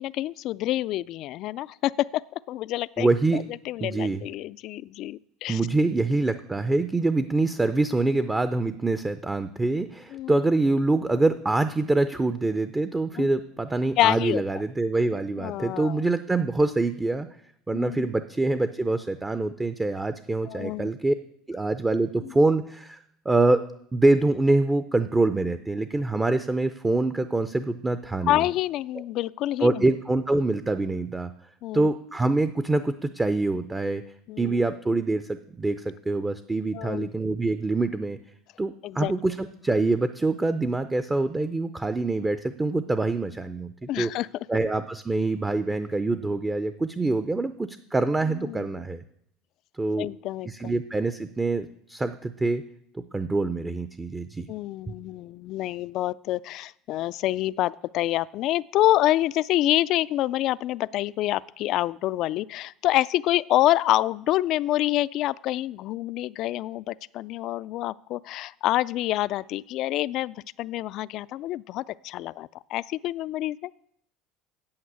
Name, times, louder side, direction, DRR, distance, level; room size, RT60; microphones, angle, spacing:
voice 1, 0.0-2.2 2.5-3.1 3.3-5.6 10.1-10.4 13.2-13.3 14.0-14.4 15.4-16.0 17.7-18.1 20.5-20.9 22.2-22.3 28.3-29.9 31.6-31.9 34.3-34.6 36.7-37.1 38.8-39.1 43.9-44.3 48.4-48.7 50.0-50.7 54.5-73.7, left 15 dB, 55° left, 19 dB, 0.3 m, -27 dB
voice 2, 3.0-3.5 3.8-4.2 5.5-17.3 17.7-21.1 21.5-23.6 23.9-28.5 29.6-31.3 31.7-34.0 34.4-38.2 38.6-44.1 44.5-49.0 49.8-50.1 50.4-52.6 52.9-54.5 54.9-55.0, right 2 dB, 15° right, 11 dB, 0.5 m, -25 dB
8.7 x 7.5 x 8.0 m, 0.71 s
supercardioid pair, 125°, 0 cm